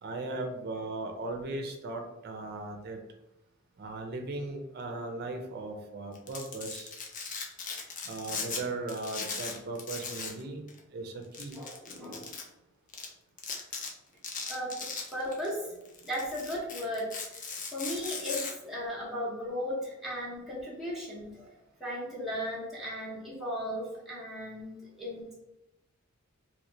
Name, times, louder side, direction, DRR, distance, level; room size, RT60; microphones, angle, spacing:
voice 1, 0.0-3.0 3.8-6.9 8.1-10.6 10.9-11.6, right 2 dB, 50° right, 4 dB, 0.5 m, -37 dB
Domestic sounds home sounds, 6.1-8.6 8.9-10.4 10.7-10.8 11.3-12.4 12.9-13.1 13.4-13.9 14.2-15.5 15.9-18.5, left 5 dB, 40° left, 0.5 m, -38 dB
voice 2, 11.6-12.3 14.5-15.7 16.0-17.4 17.7-21.5 21.8-25.3, equal, ahead, -7 dB, 0.9 m, -36 dB
3.1 x 2.8 x 2.7 m, 0.94 s
head